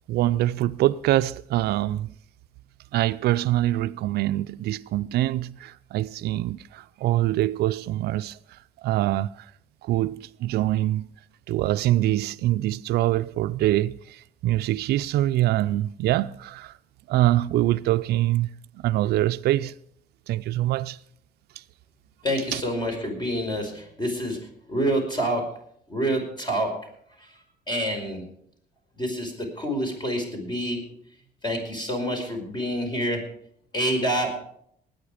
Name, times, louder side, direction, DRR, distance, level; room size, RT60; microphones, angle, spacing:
voice 1, 0.1-2.1 2.9-8.4 8.8-9.3 9.8-11.1 11.5-16.7 17.1-18.5 18.8-19.7 20.3-21.0 22.5-22.6, right 15 dB, 70° right, 0.5 m, -24 dB
voice 2, 22.2-24.4 24.7-25.4 25.9-26.7 27.2-27.3 27.7-28.2 29.0-30.8 31.4-33.2 33.7-34.3, equal, 25° left, 5.4 m, -27 dB
20.0 x 9.5 x 5.0 m
cardioid pair, 110°, 17 cm